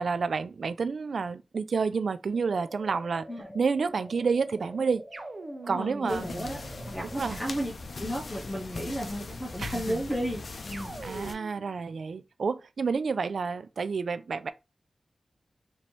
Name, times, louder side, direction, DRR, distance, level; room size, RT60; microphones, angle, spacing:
voice 1, 0.0-3.3 3.5-5.0 5.7-6.3 7.0-7.4 9.6-10.0 11.0-14.5, right 5 dB, 75° right, 0.3 m, -29 dB
sound 1, 2.3-7.3, equal, 20° right, 1.5 m, -47 dB
sound 2, 5.1-7.6 10.7-11.7, right 3 dB, 45° right, 0.7 m, -42 dB
voice 2, 5.6-7.7 8.0-10.9, equal, 10° left, 0.7 m, -34 dB
sound 3, 6.1-11.3, left 3 dB, 60° left, 0.5 m, -40 dB
3.1 x 2.8 x 4.3 m
wide cardioid pair, 80°, 0 cm